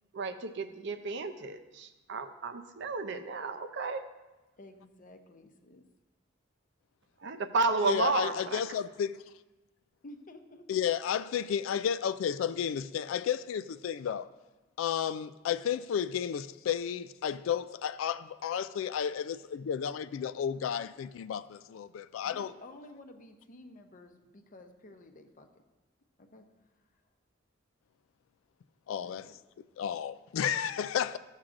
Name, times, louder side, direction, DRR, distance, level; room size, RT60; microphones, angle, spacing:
voice 1, 0.1-4.1 7.2-8.6, right 4 dB, 60° right, 0.5 m, -32 dB
voice 2, 4.6-5.8 10.0-10.7 22.2-25.6 26.2-26.5 29.0-29.3, left 1 dB, 40° left, 0.7 m, -52 dB
voice 3, 7.8-9.2 10.7-14.3 14.8-22.5 28.9-29.3 29.8-31.2, left 8 dB, 75° left, 0.3 m, -32 dB
13.5 x 7.3 x 2.5 m
head